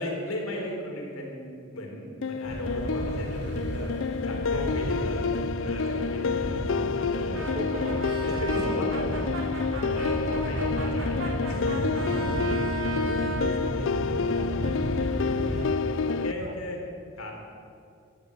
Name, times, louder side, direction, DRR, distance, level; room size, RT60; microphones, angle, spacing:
voice 1, 0.0-4.0 4.2-7.5 8.3-9.1 9.9-12.3 16.1-16.8 17.2-17.3, left 1 dB, 90° left, 0 dB, 3.9 m, -35 dB
sound 1, 2.2-16.3, left 4 dB, 65° left, 0.4 m, -29 dB
sound 2, 2.5-15.7, equal, 50° right, 1.3 m, -34 dB
voice 2, 4.1-4.8 5.7-8.3 8.6-8.9 12.2-16.5, right 1 dB, 35° right, 4 dB, 1.5 m, -42 dB
Brass instrument, 7.3-13.5, right 2 dB, 65° right, 3.0 m, -35 dB
15.5 x 10.0 x 9.1 m, 2.4 s
head